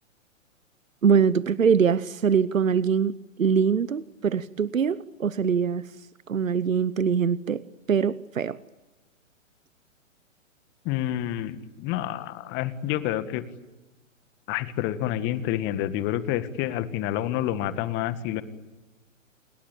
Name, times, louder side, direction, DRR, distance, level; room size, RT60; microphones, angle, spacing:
voice 1, 1.0-5.8 6.3-8.6, right 6 dB, 80° right, 18 dB, 1.0 m, -23 dB
voice 2, 10.9-13.4 14.5-18.4, left 12 dB, 30° left, 12 dB, 2.0 m, -28 dB
29.0 x 21.5 x 8.9 m, 1.1 s
figure-of-eight pair, 120°, 39 cm